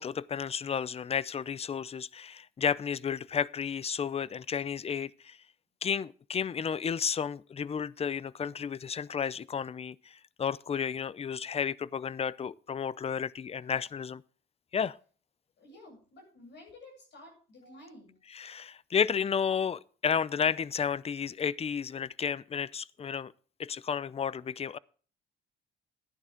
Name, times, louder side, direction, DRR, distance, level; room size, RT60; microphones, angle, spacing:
voice 1, 0.0-5.4 5.8-14.2 14.7-15.0 18.2-23.3 23.6-24.8, left 7 dB, 30° left, 0.5 m, -32 dB
voice 2, 15.6-18.2, left 1 dB, 60° left, 7.9 m, -52 dB
12.5 x 11.0 x 3.8 m
cardioid pair, 90°, 20 cm